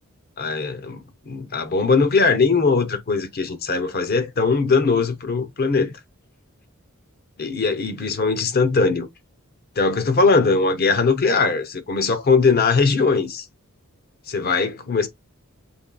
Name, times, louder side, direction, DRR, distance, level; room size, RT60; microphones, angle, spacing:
voice 1, 0.4-5.9 7.4-9.1 9.8-13.4 14.3-15.1, left 4 dB, 45° left, 0.7 m, -20 dB
7.0 x 3.2 x 2.2 m
head